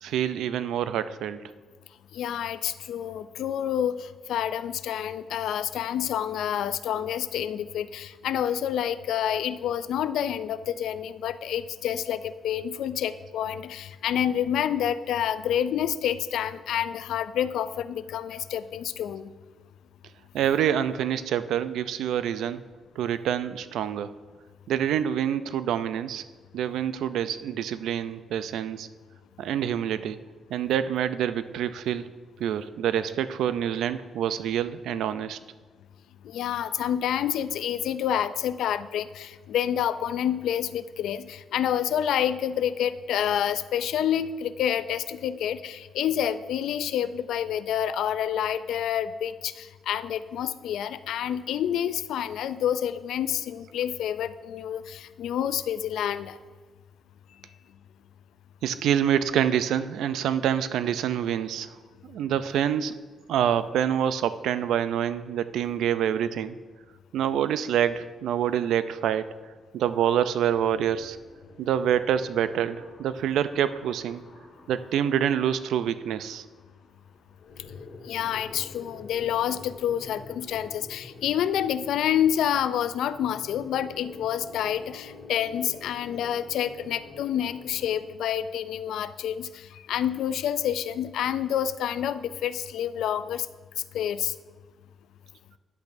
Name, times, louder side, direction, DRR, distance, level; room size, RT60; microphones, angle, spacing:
voice 1, 0.0-1.4 20.3-22.6 23.0-24.1 24.7-26.2 26.5-28.9 29.4-30.2 30.5-32.1 32.4-35.4 36.8-36.9 58.6-61.7 62.0-62.9 63.3-66.6 67.1-69.3 69.7-71.2 71.6-74.2 74.7-76.4, right 9 dB, 85° right, 13 dB, 0.4 m, -26 dB
voice 2, 2.1-19.3 36.2-56.4 78.0-93.5 93.9-94.4, left 10 dB, 80° left, 13 dB, 0.3 m, -28 dB
sound 1, 70.5-88.0, left 3 dB, 60° left, 2.1 m, -48 dB
10.5 x 8.2 x 2.6 m, 1.4 s
cardioid pair, 115°, 0 cm